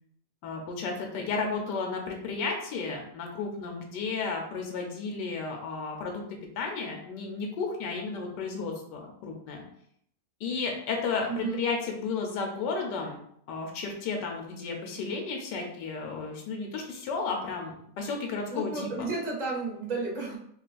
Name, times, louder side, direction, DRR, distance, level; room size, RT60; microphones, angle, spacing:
voice 1, 0.4-6.2 6.6-9.6 10.4-13.2 13.5-19.1, left 4 dB, 85° left, 2 dB, 1.3 m, -33 dB
voice 2, 11.3-11.7 18.5-20.4, right 4 dB, 35° right, -2 dB, 0.6 m, -32 dB
3.7 x 2.5 x 2.4 m, 0.68 s
omnidirectional pair, 1.8 m